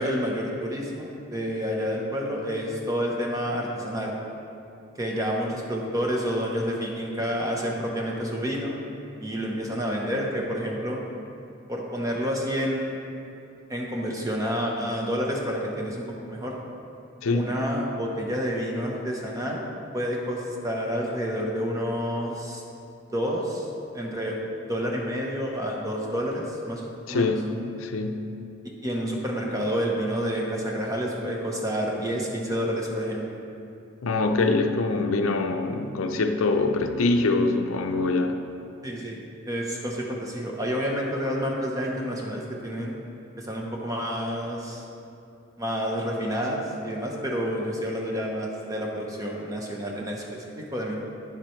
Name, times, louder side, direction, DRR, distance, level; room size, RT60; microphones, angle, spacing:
voice 1, 0.0-4.1 4.9-8.8 9.2-11.0 11.7-13.0 13.7-16.6 17.3-19.7 19.9-22.6 23.1-23.7 23.9-24.4 24.6-27.3 28.6-33.2 38.8-39.2 39.4-42.9 43.4-44.8 45.6-51.0, equal, 15° right, -1 dB, 0.8 m, -29 dB
voice 2, 17.2-17.6 27.1-27.5 27.8-28.3 34.0-38.4, left 3 dB, 75° left, 6 dB, 0.5 m, -24 dB
9.6 x 7.4 x 3.2 m, 2.7 s
head